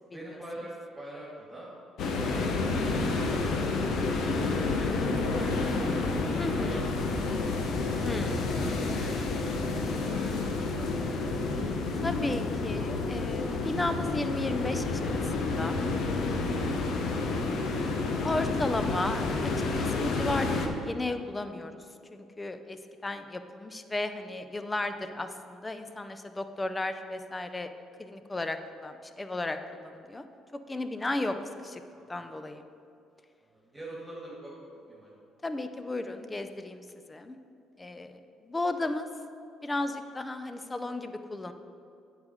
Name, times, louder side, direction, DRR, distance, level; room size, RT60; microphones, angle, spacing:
voice 1, 0.0-1.7 2.0-5.0 5.2-5.6 6.2-6.8 7.3-7.4 8.2-9.5 9.9-10.9 11.2-12.3 17.0-17.6 31.9-32.2 33.5-35.2, right 1 dB, 15° right, -5 dB, 2.1 m, -44 dB
sound 1, 2.0-20.7, left 3 dB, 65° left, 0.9 m, -29 dB
voice 2, 6.4-6.9 8.0-8.5 12.0-15.8 18.2-19.5 19.8-20.5 20.9-21.7 22.1-22.8 23.0-27.7 28.0-30.2 30.7-31.4 31.6-31.8 32.1-32.6 35.4-37.4 37.8-39.1 39.6-41.5, left 2 dB, 20° left, 9 dB, 0.6 m, -34 dB
8.2 x 4.9 x 6.5 m, 2.5 s
supercardioid pair, 70°, 0 cm